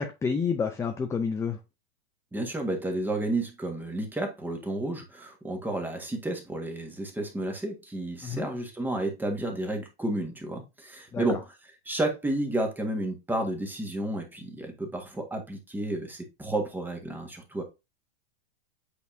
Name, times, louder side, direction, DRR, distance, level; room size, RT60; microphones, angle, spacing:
voice 1, 0.0-1.6 8.2-8.5 11.1-11.4, left 5 dB, 10° left, 0.5 m, -29 dB
voice 2, 2.3-11.4 11.8-17.6, right 1 dB, 5° right, 1.6 m, -31 dB
8.2 x 4.3 x 2.6 m
hypercardioid pair, 130°, 31 cm